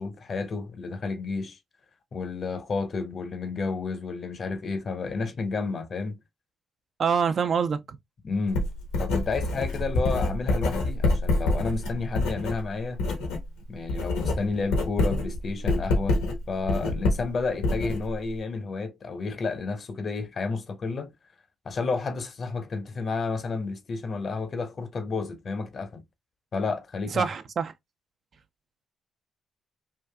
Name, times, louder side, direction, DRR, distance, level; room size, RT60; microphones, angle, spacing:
voice 1, 0.0-1.6 2.1-6.2 8.2-8.6 9.0-13.1 13.7-16.2 16.5-21.1 21.6-26.0 26.5-27.3, left 4 dB, 55° left, 0.7 m, -31 dB
voice 2, 7.0-7.8 27.1-27.7, right 6 dB, 60° right, 0.5 m, -25 dB
Writing, 8.5-13.5 13.7-18.4, left 2 dB, 85° left, 0.9 m, -26 dB
3.9 x 2.4 x 2.2 m
hypercardioid pair, 45°, 0 cm